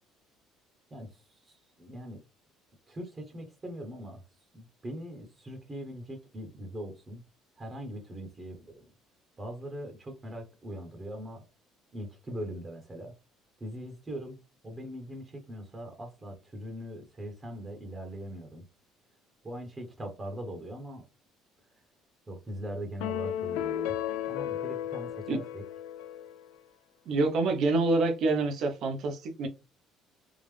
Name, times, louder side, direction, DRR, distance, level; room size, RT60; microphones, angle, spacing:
voice 1, 0.9-2.2 2.9-4.2 4.5-7.2 7.6-8.9 9.4-11.5 11.9-13.1 13.6-14.4 14.6-18.6 19.4-21.0 22.3-24.0 24.3-25.6, equal, 25° right, 1.1 m, -41 dB
sound 1, 23.0-26.5, left 11 dB, 90° left, 0.3 m, -34 dB
voice 2, 27.1-29.5, right 3 dB, 60° right, 0.9 m, -26 dB
3.7 x 2.4 x 3.3 m
cardioid pair, 100°, 0 cm